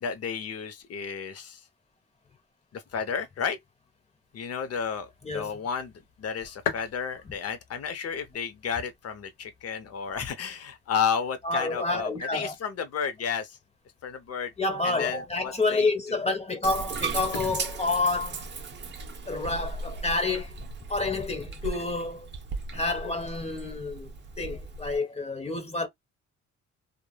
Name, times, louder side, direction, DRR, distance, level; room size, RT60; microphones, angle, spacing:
voice 1, 0.0-1.6 2.7-3.6 4.3-5.9 6.2-13.6 14.0-14.5 14.8-16.2, left 6 dB, 55° left, 0.9 m, -32 dB
sound 1, 4.2-18.4, left 8 dB, 80° left, 1.0 m, -45 dB
voice 2, 11.4-12.5 14.6-18.4 19.3-20.6 20.9-22.3 22.7-24.1 24.4-25.9, left 3 dB, 20° left, 0.8 m, -29 dB
Bathtub (filling or washing), 16.6-25.0, right 4 dB, 35° right, 0.8 m, -37 dB
3.2 x 2.4 x 2.3 m
cardioid pair, 90°, 30 cm